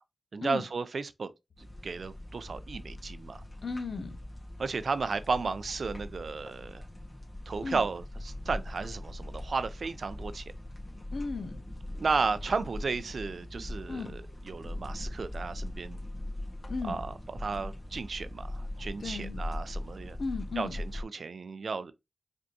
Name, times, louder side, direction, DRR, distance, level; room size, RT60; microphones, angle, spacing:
voice 1, 0.3-1.3 1.8-3.4 4.6-6.9 7.5-10.4 12.0-16.0 16.8-20.2 20.6-21.9, right 4 dB, 80° right, 0.4 m, -34 dB
sound 1, 1.6-21.0, left 1 dB, 35° left, 1.5 m, -41 dB
voice 2, 3.6-4.2 7.6-7.8 11.1-11.6 13.9-14.1 16.7-17.0 19.0-19.4 20.2-20.8, left 4 dB, 80° left, 0.6 m, -35 dB
5.1 x 3.5 x 2.7 m
cardioid pair, 50°, 0 cm